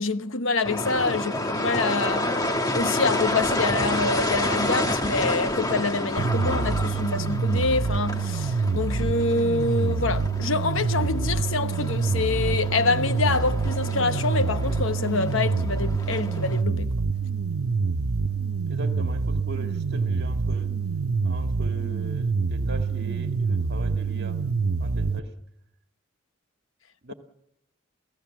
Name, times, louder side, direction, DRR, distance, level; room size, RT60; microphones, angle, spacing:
voice 1, 0.0-2.4 2.7-16.9 27.1-27.2, left 3 dB, 65° left, 1.0 m, -26 dB
sound 1, 0.6-16.6, left 1 dB, 15° left, 1.5 m, -30 dB
sound 2, 6.2-25.2, right 4 dB, 75° right, 0.8 m, -26 dB
voice 2, 18.7-20.7 21.2-24.4 24.6-25.3 27.0-27.1, right 1 dB, 50° right, 2.0 m, -40 dB
28.5 x 17.0 x 7.2 m
head